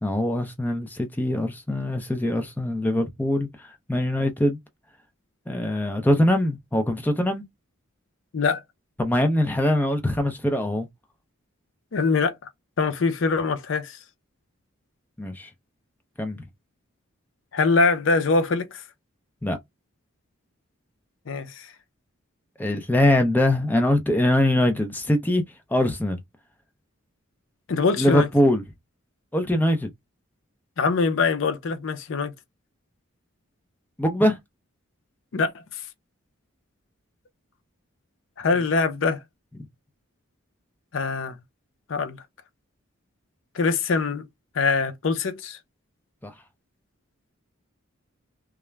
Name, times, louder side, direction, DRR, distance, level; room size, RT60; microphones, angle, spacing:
voice 1, 0.0-4.6 5.5-7.4 9.0-10.9 15.2-15.5 16.2-16.4 19.4-19.6 22.6-25.4 25.7-26.2 28.0-28.6 29.3-29.9 34.0-34.4 46.2-46.3, left 1 dB, 10° left, 0.4 m, -22 dB
voice 2, 11.9-12.3 12.8-14.0 17.5-18.8 21.3-21.7 27.7-28.3 30.8-32.3 35.3-35.8 38.4-39.2 40.9-41.3 41.9-42.2 43.5-44.3 44.5-45.6, left 4 dB, 65° left, 0.5 m, -23 dB
2.3 x 2.1 x 3.1 m
head